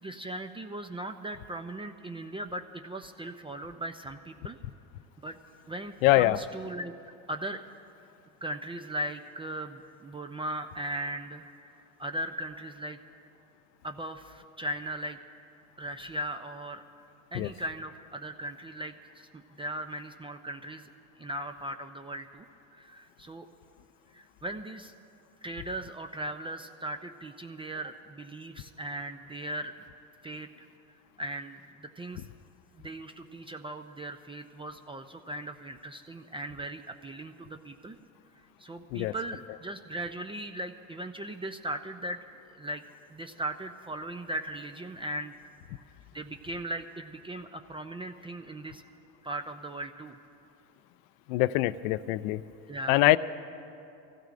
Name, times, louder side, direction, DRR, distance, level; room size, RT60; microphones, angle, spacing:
voice 1, 0.0-4.6 5.2-5.4 5.7-6.9 7.3-7.6 8.4-11.5 11.8-13.0 13.8-15.2 15.8-16.8 17.3-20.9 21.2-22.5 22.7-23.5 24.1-24.9 25.4-29.7 30.2-30.7 31.2-32.3 32.8-38.0 38.6-42.2 42.5-42.8 43.1-45.3 46.1-48.8 49.2-50.1 52.7-53.0, right 1 dB, 15° right, 6 dB, 0.4 m, -38 dB
voice 2, 6.0-6.4 17.4-17.5 38.9-39.1 51.3-52.4 52.9-53.2, left 17 dB, 75° left, 16 dB, 0.5 m, -23 dB
24.5 x 15.5 x 2.5 m, 2.7 s
supercardioid pair, 95°, 42 cm